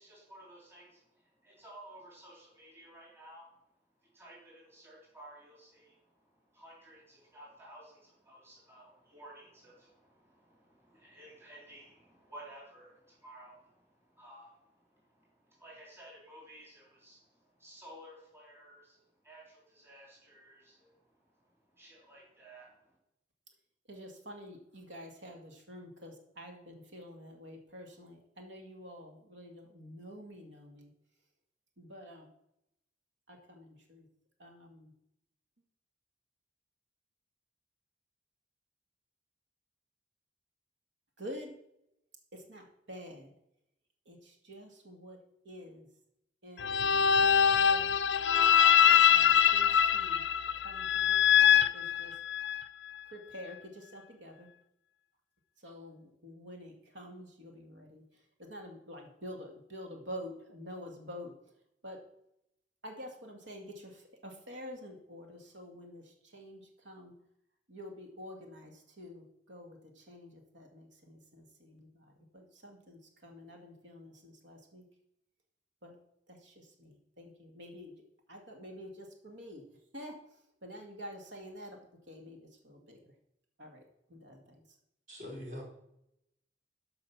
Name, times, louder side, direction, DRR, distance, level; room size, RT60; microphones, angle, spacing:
voice 1, 0.0-3.5 4.0-23.0, right 1 dB, 15° right, -5 dB, 3.3 m, -55 dB
voice 2, 23.9-30.9 31.8-32.3 33.3-34.1 34.4-34.9 41.2-41.5 42.3-43.4 44.1-45.2 45.4-45.9 46.4-48.0 48.8-50.2 50.6-52.2 53.1-54.5 55.6-58.0 58.4-61.3 61.8-62.0 62.8-67.1 67.7-74.8 75.8-76.0 76.3-77.9 78.3-79.6 79.9-80.2 80.6-81.8 82.1-83.1 83.6-83.8 84.1-84.6, equal, 80° right, 2 dB, 2.1 m, -48 dB
sound 1, 46.6-52.6, left 8 dB, 70° left, 0.5 m, -24 dB
voice 3, 85.1-85.6, left 1 dB, 50° right, -2 dB, 3.8 m, -42 dB
13.0 x 5.3 x 5.9 m, 0.80 s
head